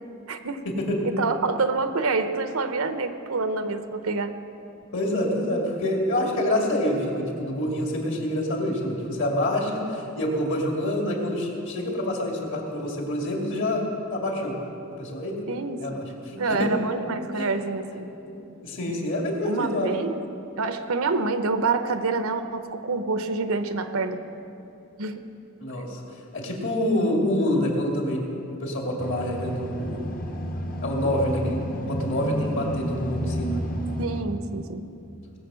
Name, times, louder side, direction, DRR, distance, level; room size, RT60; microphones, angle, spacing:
voice 1, 0.3-0.6 1.0-4.4 15.5-15.8 16.4-18.1 19.4-20.3 20.6-24.2 25.0-25.2 34.0-34.8, right 3 dB, 70° right, 9 dB, 0.8 m, -27 dB
voice 2, 4.9-13.8 14.1-14.6 15.0-15.3 15.8-16.7 17.3-17.5 18.3-19.9 25.6-28.2 28.6-30.0 30.8-33.6, left 1 dB, 60° left, 0 dB, 2.6 m, -27 dB
sound 1, 29.0-34.2, equal, 40° left, 1.1 m, -31 dB
19.5 x 7.7 x 6.3 m, 2.7 s
head